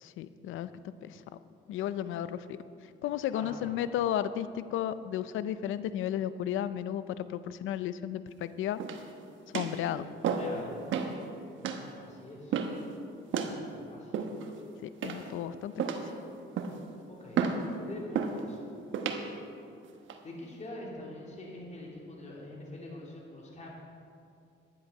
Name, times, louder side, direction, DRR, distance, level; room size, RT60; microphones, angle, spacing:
voice 1, 0.0-0.7 1.0-1.2 1.7-2.6 3.0-8.8 9.5-10.1 14.8-15.7, left 11 dB, 80° left, 14 dB, 0.5 m, -33 dB
voice 2, 3.3-3.7 10.3-10.8 12.0-12.6 13.4-14.1 17.1-17.4 17.8-18.6 19.2-19.4 20.2-23.7, left 1 dB, 35° left, -3 dB, 2.9 m, -45 dB
sound 1, 8.8-9.2 9.5-9.8 10.2-10.6 10.9-11.2 11.6-11.8 12.5-12.8 13.3-13.6 14.1-14.6 15.0-15.4 15.8-16.1 16.6-16.9 17.4-17.6 18.1-18.4 18.9-19.2 19.8-20.2, right 6 dB, 75° right, 1.1 m, -32 dB
11.0 x 10.5 x 5.5 m, 2.5 s
cardioid pair, 90°, 20 cm